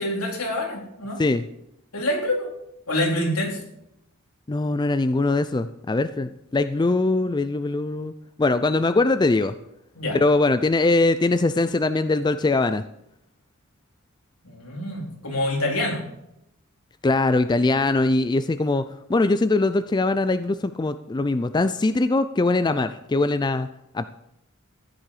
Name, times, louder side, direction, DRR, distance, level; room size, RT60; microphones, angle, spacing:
voice 1, 0.0-1.2 1.9-2.5 2.9-3.6 10.0-10.2 14.4-16.0, left 1 dB, 75° left, -1 dB, 3.9 m, -26 dB
voice 2, 4.5-8.1 8.4-9.5 10.1-12.8 17.0-23.7 23.9-24.1, left 2 dB, 20° left, 11 dB, 0.4 m, -22 dB
14.5 x 10.0 x 4.9 m, 0.82 s
head